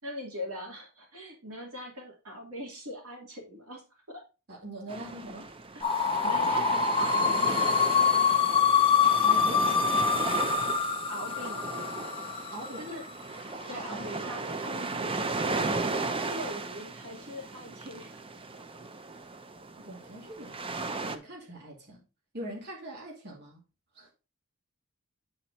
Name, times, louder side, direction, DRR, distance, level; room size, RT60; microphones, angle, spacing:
voice 1, 0.0-3.8 4.1-4.2 6.2-7.7 11.1-11.7 12.8-13.0 13.7-15.6 16.2-18.2, equal, 75° right, 2.7 m, -41 dB
voice 2, 4.5-5.5 9.2-9.9 12.5-12.9 13.7-14.1 19.8-22.0 22.3-23.6 23.9-24.1, right 1 dB, 50° right, 2.5 m, -42 dB
sound 1, 4.9-21.2, right 3 dB, 25° right, 0.6 m, -35 dB
sound 2, 5.8-12.8, left 6 dB, 25° left, 0.9 m, -25 dB
8.7 x 4.4 x 4.1 m
head